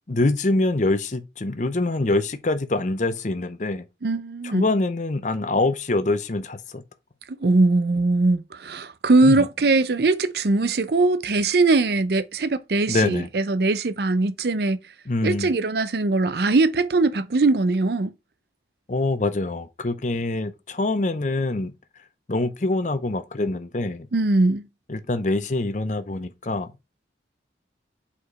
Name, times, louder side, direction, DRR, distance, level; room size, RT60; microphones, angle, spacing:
voice 1, 0.1-3.9 4.4-6.8 9.2-9.5 12.9-13.3 15.1-15.5 18.9-21.7 22.3-24.1 24.9-26.7, left 2 dB, 40° left, 0.6 m, -25 dB
voice 2, 4.0-4.6 7.3-14.8 15.2-18.1 24.1-24.6, right 3 dB, 60° right, 0.5 m, -21 dB
4.9 x 4.3 x 5.4 m
head